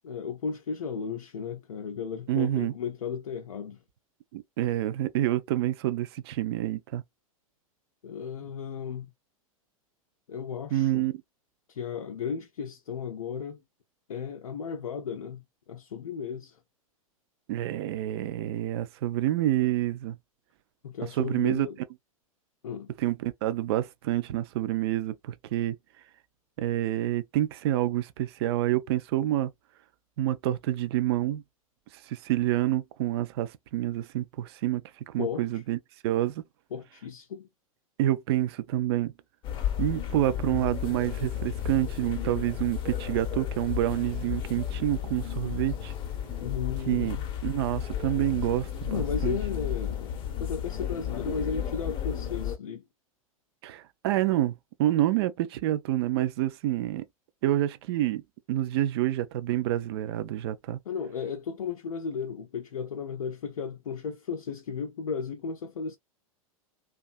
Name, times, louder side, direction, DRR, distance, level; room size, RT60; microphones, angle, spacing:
voice 1, 0.0-3.8 8.0-9.1 10.3-11.1 11.7-13.6 14.1-16.6 20.8-21.8 22.6-22.9 35.2-35.6 36.7-37.5 46.4-47.2 48.9-50.1 50.4-52.8 60.9-66.0, left 6 dB, 70° left, 0.4 m, -35 dB
voice 2, 2.3-2.7 4.3-7.0 10.7-11.2 17.5-20.2 21.2-21.7 23.0-25.8 26.6-29.5 30.2-31.4 32.1-34.8 35.1-35.8 36.0-36.4 38.0-39.1 39.8-45.9 46.9-47.2 47.4-49.4 53.6-57.0 57.4-58.2 58.5-60.8, right 14 dB, 45° right, 0.4 m, -28 dB
sound 1, 39.4-52.6, left 10 dB, 25° left, 0.7 m, -33 dB
2.6 x 2.3 x 2.3 m
figure-of-eight pair, 95°, 18 cm